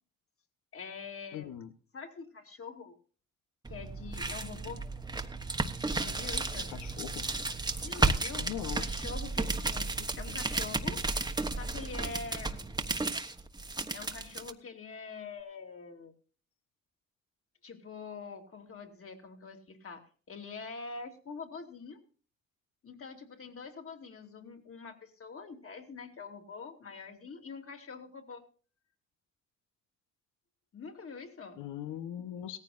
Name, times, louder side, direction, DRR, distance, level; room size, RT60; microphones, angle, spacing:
voice 1, 0.7-1.5 1.9-2.9 3.7-4.9 6.0-6.7 7.8-8.5 8.8-9.9 10.2-11.0 11.5-12.7 13.9-16.1 17.6-22.0 22.8-28.4 30.7-31.6, left 4 dB, 45° left, 4 dB, 2.8 m, -45 dB
voice 2, 1.3-1.7 6.7-7.3 8.4-8.9 10.3-10.4 31.6-32.6, left 11 dB, 85° left, 10 dB, 1.1 m, -40 dB
sound 1, 3.6-14.5, right 3 dB, 15° right, 1.2 m, -33 dB
17.5 x 14.5 x 2.6 m, 0.39 s
cardioid pair, 90°, 30 cm